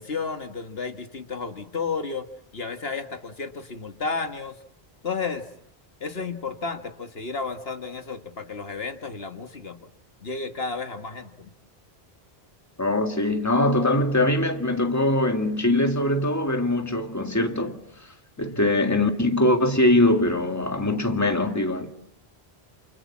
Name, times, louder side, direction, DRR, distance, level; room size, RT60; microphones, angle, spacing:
voice 1, 0.0-2.3 2.5-4.6 5.0-5.5 6.0-9.9 10.2-11.5 18.4-18.6, left 4 dB, 65° left, 1.8 m, -32 dB
voice 2, 12.8-17.8 18.4-21.9, left 1 dB, 15° left, 2.0 m, -22 dB
29.0 x 28.0 x 7.3 m
omnidirectional pair, 1.1 m